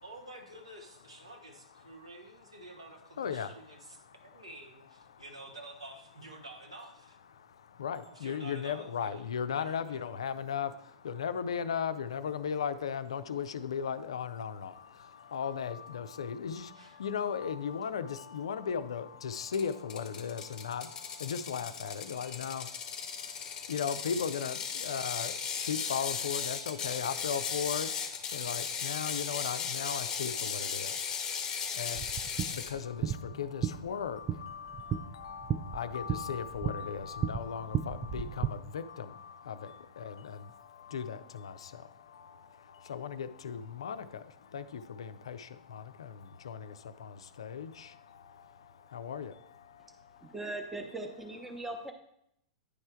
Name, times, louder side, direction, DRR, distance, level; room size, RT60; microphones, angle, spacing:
voice 1, 0.0-7.2 8.0-10.1 16.7-17.0, right 1 dB, 80° right, 2 dB, 0.9 m, -50 dB
voice 2, 3.2-3.5 7.8-10.7 11.0-14.7 15.3-16.7 17.0-20.9 21.2-22.6 23.7-25.3 25.7-27.9 28.3-30.9 31.8-32.0 32.7-39.1 39.5-40.4 40.9-41.6 42.9-44.0 44.5-45.4 45.7-46.1 46.4-46.6 47.0-47.9 48.9-49.3, left 7 dB, 65° left, 12 dB, 0.4 m, -36 dB
Ratchet pawl, 19.5-32.7, left 6 dB, 25° left, 0.7 m, -37 dB
sound 1, 32.0-38.5, right 8 dB, 25° right, 0.4 m, -35 dB
voice 3, 50.2-51.9, right 2 dB, 5° right, 4 dB, 0.7 m, -39 dB
9.6 x 3.3 x 4.4 m, 0.76 s
figure-of-eight pair, 95°, 3 cm